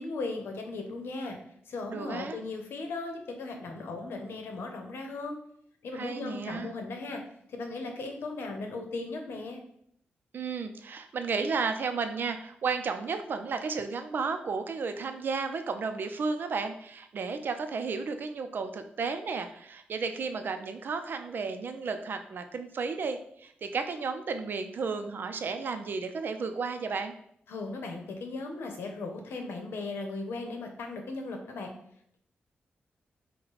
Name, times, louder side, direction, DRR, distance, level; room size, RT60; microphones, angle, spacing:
voice 1, 0.0-1.4 1.7-5.4 5.8-7.2 7.5-9.6 27.5-31.7, left 3 dB, 80° left, 3 dB, 0.9 m, -37 dB
voice 2, 1.9-2.4 5.9-6.7 10.3-27.1, right 4 dB, 60° right, 8 dB, 0.5 m, -33 dB
5.7 x 2.2 x 4.0 m, 0.68 s
cardioid pair, 100°, 4 cm